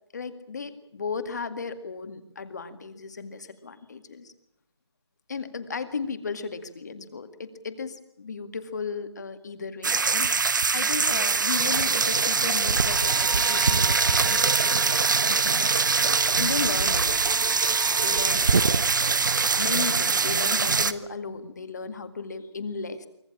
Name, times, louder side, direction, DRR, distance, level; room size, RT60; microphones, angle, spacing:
voice 1, 0.1-4.3 5.3-15.9 16.4-17.2 18.0-18.8 19.1-19.2 19.4-23.1, left 5 dB, 40° left, 10 dB, 2.0 m, -35 dB
sound 1, 9.8-20.9, right 4 dB, 45° right, 0.9 m, -23 dB
Bowed string instrument, 12.8-18.4, right 5 dB, 85° right, 4.9 m, -39 dB
24.5 x 17.0 x 8.7 m, 0.78 s
figure-of-eight pair, 170°, 15 cm